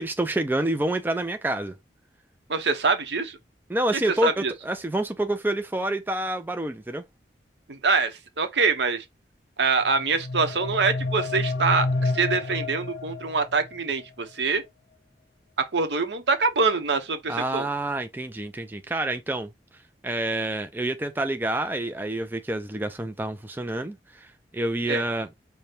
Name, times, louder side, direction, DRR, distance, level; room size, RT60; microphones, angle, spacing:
voice 1, 0.0-1.7 3.7-7.0 17.3-19.5 20.0-25.3, right 1 dB, 10° right, 0.4 m, -28 dB
voice 2, 2.5-3.4 4.2-4.5 7.7-9.0 9.6-14.6 15.6-17.7 24.9-25.0, right 4 dB, 80° right, 0.8 m, -24 dB
sound 1, 9.9-13.8, left 3 dB, 85° left, 0.6 m, -29 dB
5.1 x 2.2 x 4.3 m
head